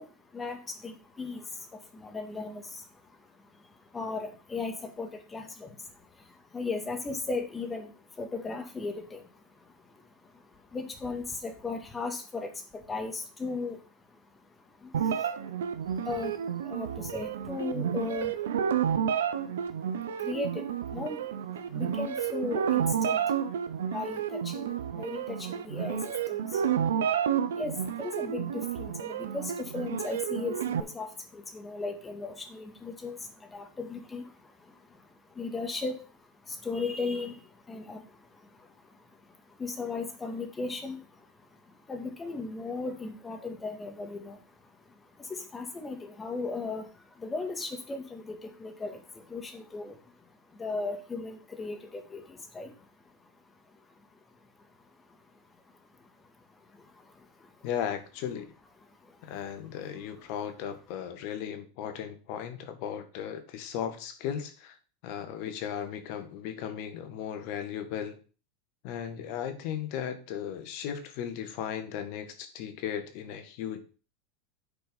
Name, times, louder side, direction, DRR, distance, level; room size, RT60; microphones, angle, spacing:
voice 1, 0.0-19.0 19.3-54.5 54.8-57.7 58.9-59.4, left 3 dB, 20° left, 6 dB, 2.0 m, -38 dB
sound 1, 14.9-30.8, right 8 dB, 85° right, 0.9 m, -31 dB
voice 2, 57.6-58.5 59.2-64.8 65.0-68.2 68.8-73.8, left 9 dB, 60° left, 8 dB, 1.7 m, -36 dB
8.8 x 4.7 x 5.4 m, 0.36 s
hypercardioid pair, 100°, 0 cm